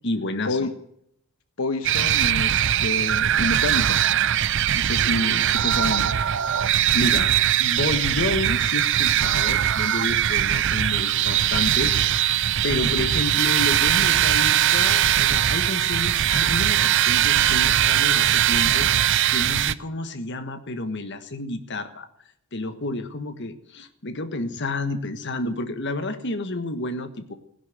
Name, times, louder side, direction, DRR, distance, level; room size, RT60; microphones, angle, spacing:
voice 1, 0.0-0.6 6.9-7.3 7.6-11.9 12.6-22.1 22.5-27.3, left 2 dB, 55° left, 10 dB, 1.5 m, -30 dB
voice 2, 1.6-4.0 4.7-6.1, left 2 dB, 75° left, 9 dB, 1.1 m, -28 dB
sound 1, 1.8-19.7, right 11 dB, 55° right, 0.6 m, -21 dB
16.0 x 11.0 x 7.9 m, 0.71 s
head